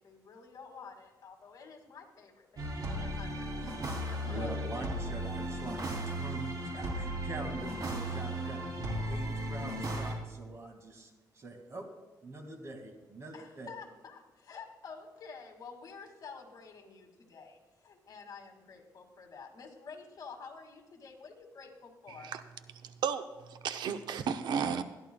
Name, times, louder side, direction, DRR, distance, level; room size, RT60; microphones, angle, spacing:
voice 1, 0.0-4.5 13.3-22.3, left 5 dB, 55° left, 3 dB, 2.3 m, -50 dB
sound 1, 2.6-10.1, right 1 dB, 60° right, 3.1 m, -36 dB
voice 2, 4.2-8.6 9.0-11.9 12.2-13.7, right 2 dB, 40° right, 4 dB, 2.2 m, -44 dB
voice 3, 22.8-24.8, right 7 dB, 80° right, 8 dB, 0.7 m, -34 dB
20.5 x 13.5 x 2.3 m, 1.2 s
cardioid pair, 120°, 7 cm